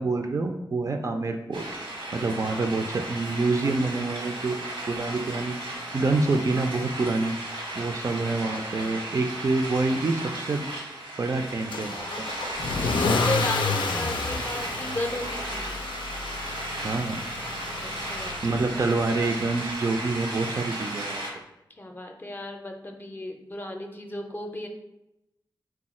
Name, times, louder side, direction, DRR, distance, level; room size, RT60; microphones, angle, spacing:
voice 1, 0.0-1.6 2.1-4.6 4.9-7.4 7.7-10.7 11.2-12.0 16.8-17.2 18.4-21.2, right 3 dB, 40° right, 5 dB, 0.4 m, -27 dB
sound 1, 1.5-21.3, right 1 dB, 90° right, 1.1 m, -35 dB
Car / Engine starting / Accelerating revving vroom, 11.7-18.8, left 4 dB, 85° left, 0.4 m, -30 dB
voice 2, 12.8-15.7 17.8-18.4 21.8-24.7, left 1 dB, 25° left, 2 dB, 0.5 m, -34 dB
4.6 x 2.3 x 4.2 m, 0.90 s
wide cardioid pair, 125°, 8 cm